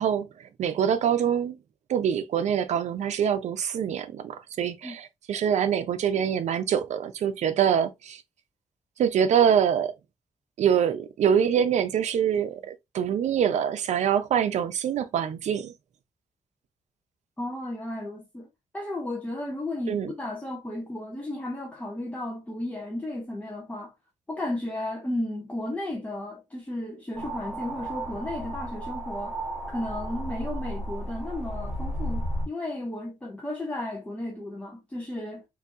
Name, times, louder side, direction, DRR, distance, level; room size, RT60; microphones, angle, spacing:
voice 1, 0.0-1.6 1.9-8.2 9.0-9.9 10.6-15.7 19.9-20.1, right 8 dB, 75° right, 0.6 m, -25 dB
voice 2, 17.4-18.5 18.7-23.9 24.3-29.4 29.7-35.5, left 1 dB, 10° left, 0.8 m, -34 dB
sound 1, 27.1-32.5, right 1 dB, 5° right, 1.9 m, -33 dB
3.9 x 2.7 x 2.6 m
cardioid pair, 115°, 12 cm